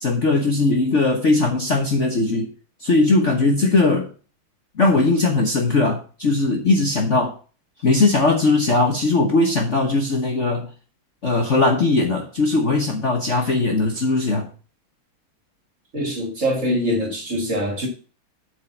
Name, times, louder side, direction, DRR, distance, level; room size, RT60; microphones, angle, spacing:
voice 1, 0.0-2.5 2.8-4.1 4.8-7.3 7.8-10.7 11.2-14.5, left 3 dB, 40° left, 1.2 m, -19 dB
voice 2, 15.9-17.9, equal, 35° right, 2.4 m, -23 dB
7.8 x 4.7 x 7.1 m
omnidirectional pair, 2.3 m